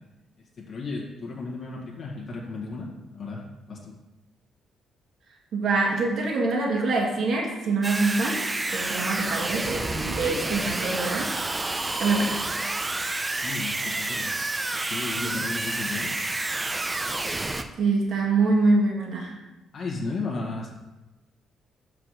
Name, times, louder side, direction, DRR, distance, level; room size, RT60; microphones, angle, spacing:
voice 1, 0.6-3.9 13.4-14.6 14.8-16.1 19.7-20.7, left 3 dB, 55° left, -3 dB, 1.6 m, -34 dB
voice 2, 5.5-8.4 8.7-11.3 12.0-12.4 17.8-19.4, right 3 dB, 65° right, -1 dB, 1.9 m, -24 dB
sound 1, 7.8-17.6, right 2 dB, 25° right, 0.6 m, -29 dB
5.7 x 5.0 x 6.5 m, 1.1 s
cardioid pair, 90°, 0 cm